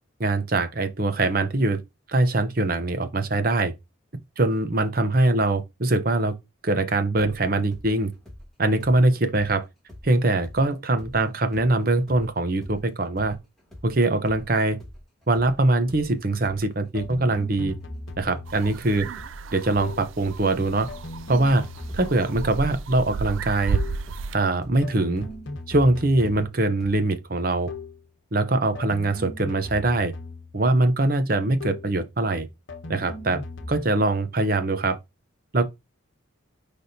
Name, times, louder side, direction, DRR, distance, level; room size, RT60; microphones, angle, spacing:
voice 1, 0.2-1.8 2.1-3.7 4.4-6.4 6.6-8.1 8.6-9.7 10.0-13.4 13.8-14.8 15.3-17.7 18.2-19.1 19.5-20.9 21.3-21.7 21.9-23.8 24.3-25.3 25.7-27.7 28.3-30.1 30.5-32.5 32.9-33.4 33.7-35.0 35.5-35.6, right 2 dB, 45° right, 0.9 m, -22 dB
sound 1, 7.2-10.7 11.0-18.8 19.2-27.0, left 1 dB, ahead, 2.3 m, -45 dB
sound 2, 16.9-18.8 19.8-20.2 20.9-22.8 23.7-24.1 24.8-26.7 27.7-28.1 28.7-30.7 31.6-32.0 32.7-33.8, left 2 dB, 70° left, 0.9 m, -38 dB
sound 3, 18.5-24.4, right 4 dB, 75° right, 0.4 m, -33 dB
9.9 x 3.5 x 2.8 m
head